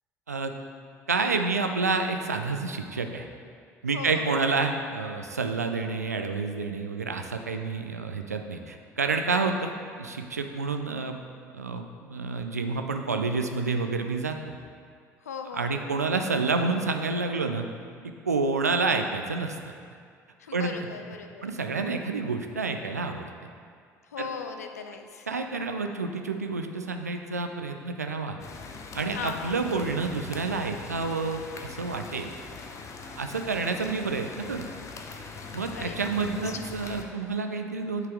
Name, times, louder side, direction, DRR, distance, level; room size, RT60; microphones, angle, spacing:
voice 1, 1.1-3.3 3.8-9.7 10.0-11.2 11.5-14.6 15.5-17.7 18.0-19.6 20.5-20.8 21.4-23.3 24.2-24.3 25.3-28.4 28.9-32.3 33.2-34.6 35.5-38.1, right 4 dB, 85° right, 5 dB, 0.4 m, -29 dB
voice 2, 3.9-4.3 15.2-15.9 20.4-21.5 24.1-25.3 29.1-29.5 35.7-36.7, left 6 dB, 75° left, 6 dB, 0.5 m, -38 dB
sound 1, 28.4-37.0, left 4 dB, 35° left, 0.8 m, -42 dB
9.1 x 5.8 x 3.5 m, 2.2 s
figure-of-eight pair, 55°, 8 cm